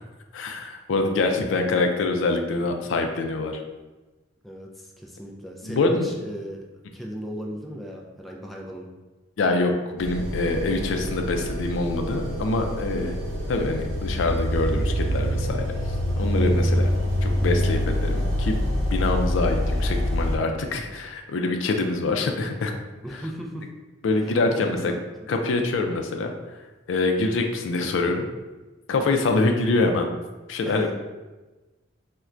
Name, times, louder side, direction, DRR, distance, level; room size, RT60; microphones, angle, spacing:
voice 1, 0.3-3.6 5.6-6.1 9.4-13.1 13.5-15.7 16.2-16.9 17.2-18.7 18.9-22.7 24.0-24.9 25.3-26.3 26.9-28.3 28.9-30.1 30.5-30.9, left 3 dB, 75° left, 4 dB, 0.4 m, -25 dB
voice 2, 4.4-6.6 6.9-8.9 17.0-17.2 23.0-23.7 24.1-25.0 30.7-30.8, equal, ahead, -1 dB, 0.3 m, -37 dB
sound 1, 10.0-20.4, equal, 75° right, 0.7 m, -25 dB
4.3 x 2.1 x 2.5 m, 1.2 s
head